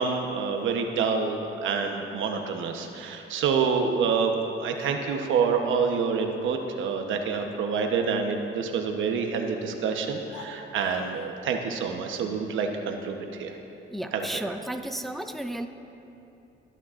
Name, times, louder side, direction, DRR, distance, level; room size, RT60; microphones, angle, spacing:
voice 1, 0.0-4.3 4.6-13.5 14.1-14.3, right 5 dB, 80° right, 4 dB, 1.0 m, -27 dB
sound 1, 10.2-11.4, left 3 dB, 90° left, 1.0 m, -45 dB
voice 2, 13.9-15.7, right 1 dB, ahead, 6 dB, 0.5 m, -33 dB
19.0 x 9.2 x 2.5 m, 3.0 s
cardioid pair, 90°, 20 cm